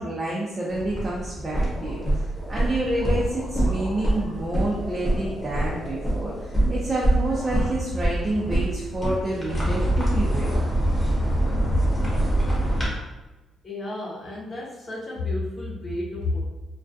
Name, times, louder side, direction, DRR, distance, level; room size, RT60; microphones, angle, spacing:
voice 1, 0.0-10.6, right 1 dB, 35° right, -6 dB, 0.6 m, -28 dB
sound 1, 0.7-12.9, right 1 dB, 15° left, 1.0 m, -25 dB
sound 2, 1.7-7.0 7.3-8.0 8.3-9.2, left 1 dB, 70° left, 0.8 m, -42 dB
voice 2, 13.6-16.4, left 2 dB, 40° left, -4 dB, 0.7 m, -31 dB
2.3 x 2.3 x 2.6 m, 1.1 s
cardioid pair, 90°, 0 cm